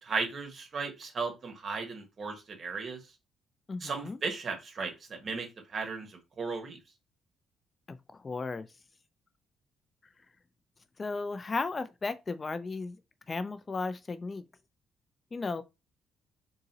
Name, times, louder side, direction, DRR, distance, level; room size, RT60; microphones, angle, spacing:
voice 1, 0.0-3.0 3.8-6.8, right 4 dB, 45° right, 1.5 m, -36 dB
voice 2, 3.7-4.2 7.9-8.7 11.0-13.0 13.3-14.4 15.3-15.6, left 3 dB, 30° left, 0.4 m, -35 dB
3.9 x 3.7 x 2.8 m
cardioid pair, 90°, 0 cm